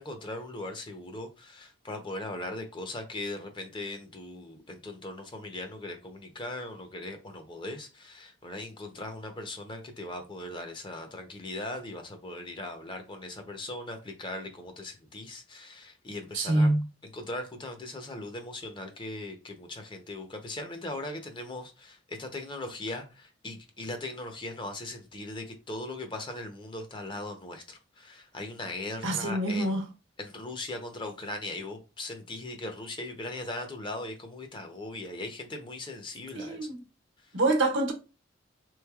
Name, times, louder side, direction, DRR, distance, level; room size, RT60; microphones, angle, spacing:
voice 1, 0.0-16.7 17.1-29.8 30.2-36.7 37.2-37.4, left 2 dB, 25° left, 0.6 m, -39 dB
voice 2, 16.3-16.8 29.0-29.9 36.3-36.8 37.3-37.9, right 2 dB, 90° right, 0.9 m, -26 dB
3.5 x 3.1 x 2.3 m
head